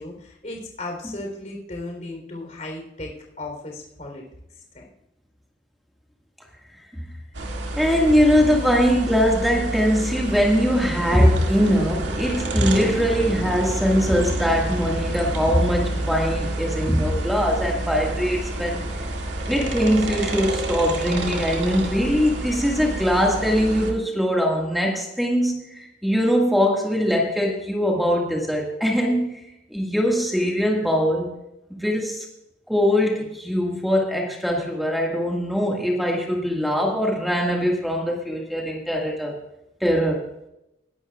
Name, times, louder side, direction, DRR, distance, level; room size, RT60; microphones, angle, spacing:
voice 1, 0.0-3.1 3.4-4.2 4.7-4.8, left 2 dB, 40° left, 1 dB, 3.8 m, -35 dB
sound 1, 7.3-23.9, right 1 dB, 80° right, 2.4 m, -28 dB
voice 2, 7.8-18.9 19.5-29.4 29.7-31.4 31.7-32.2 32.7-39.4 39.8-40.3, equal, ahead, -1 dB, 1.9 m, -21 dB
20.5 x 11.5 x 2.5 m, 0.85 s
head